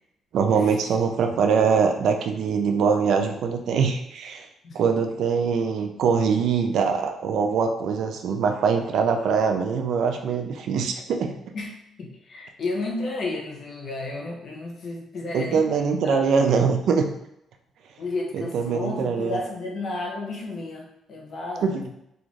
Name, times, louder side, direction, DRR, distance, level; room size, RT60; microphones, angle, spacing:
voice 1, 0.3-4.5 4.7-11.4 15.3-17.1 18.3-19.4 21.6-21.7, right 6 dB, 75° right, 5 dB, 0.4 m, -23 dB
voice 2, 11.5-16.5 18.0-21.9, left 2 dB, 55° left, -1 dB, 0.8 m, -32 dB
2.5 x 2.4 x 3.1 m, 0.79 s
cardioid pair, 90°, 0 cm